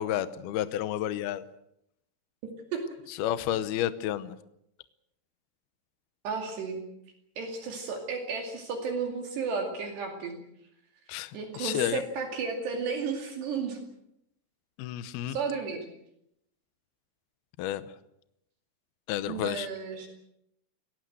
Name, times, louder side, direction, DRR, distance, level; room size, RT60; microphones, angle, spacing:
voice 1, 0.0-1.4 3.1-4.4 11.1-12.0 14.8-15.4 17.6-17.8 19.1-19.7, left 12 dB, 75° left, 13 dB, 2.4 m, -31 dB
voice 2, 2.4-2.8 6.2-6.8 7.4-10.4 11.3-13.8 15.3-15.9 19.3-20.1, right 5 dB, 65° right, 3 dB, 4.4 m, -33 dB
24.5 x 18.0 x 7.9 m, 0.78 s
omnidirectional pair, 5.5 m